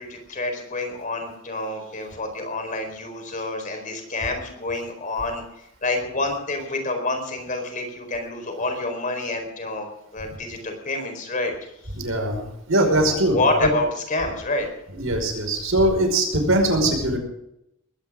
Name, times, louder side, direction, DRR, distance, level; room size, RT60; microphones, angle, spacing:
voice 1, 0.0-5.4 5.8-11.5 13.1-14.7, left 2 dB, 40° left, 4 dB, 4.4 m, -28 dB
voice 2, 11.9-13.4 14.9-17.2, right 1 dB, 80° right, 3 dB, 5.3 m, -21 dB
20.5 x 17.5 x 3.7 m, 0.82 s
head